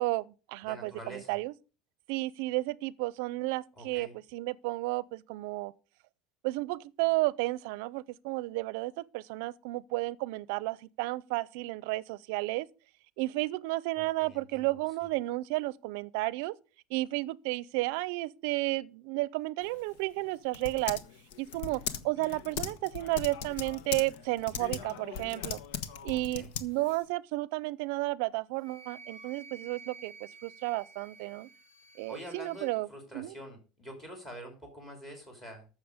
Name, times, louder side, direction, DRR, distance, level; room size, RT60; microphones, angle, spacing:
voice 1, 0.0-1.5 2.1-5.7 6.4-12.7 13.2-16.6 16.9-21.0 21.4-25.6 26.0-31.5 32.0-32.9 33.1-33.3, right 20 dB, 65° right, 0.5 m, -32 dB
voice 2, 0.6-1.4 3.7-4.1 13.9-14.8 21.5-22.1 26.1-26.5 32.1-35.7, equal, 15° left, 3.0 m, -46 dB
Typing, 19.6-27.1, left 7 dB, 85° left, 1.2 m, -40 dB
Wind instrument woodwind instrument, 28.6-32.8, right 4 dB, 55° left, 2.4 m, -51 dB
14.5 x 6.6 x 5.1 m
cardioid pair, 175°, 0 cm